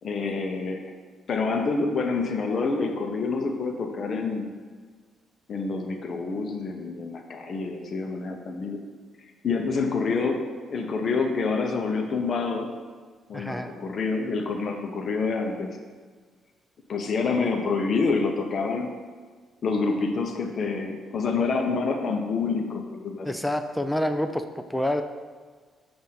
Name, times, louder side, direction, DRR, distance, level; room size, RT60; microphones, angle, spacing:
voice 1, 0.0-0.8 1.3-4.5 5.5-8.8 9.4-12.7 13.3-15.8 16.9-18.9 19.6-23.3, left 4 dB, 50° left, 4 dB, 0.6 m, -27 dB
voice 2, 13.3-13.7 23.2-25.0, left 1 dB, 5° left, 8 dB, 0.3 m, -27 dB
7.4 x 2.6 x 5.7 m, 1.5 s
cardioid pair, 90°, 0 cm